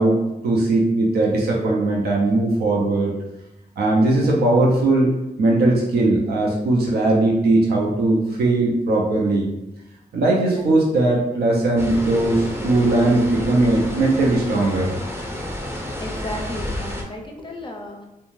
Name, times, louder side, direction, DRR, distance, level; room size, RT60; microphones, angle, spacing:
voice 1, 0.0-3.1 3.8-5.1 5.4-9.5 10.1-14.9, right 2 dB, 85° right, -2 dB, 0.5 m, -19 dB
voice 2, 10.3-10.7 16.0-18.1, left 1 dB, 30° left, 1 dB, 0.5 m, -34 dB
sound 1, 11.8-17.0, left 1 dB, 15° right, 0.6 m, -30 dB
2.4 x 2.2 x 3.1 m, 0.94 s
cardioid pair, 65°, 16 cm